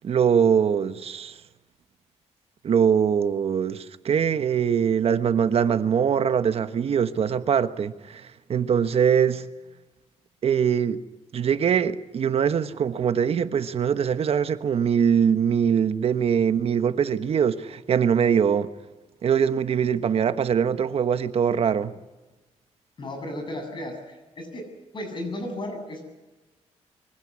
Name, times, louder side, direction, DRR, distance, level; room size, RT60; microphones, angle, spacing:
voice 1, 0.0-1.4 2.6-9.4 10.4-11.0 11.3-18.7 19.2-21.9, right 7 dB, 55° right, 1.2 m, -22 dB
voice 2, 23.0-24.7 24.9-26.0, left 1 dB, 40° left, 7.8 m, -34 dB
23.5 x 16.0 x 9.7 m
cardioid pair, 115°, 12 cm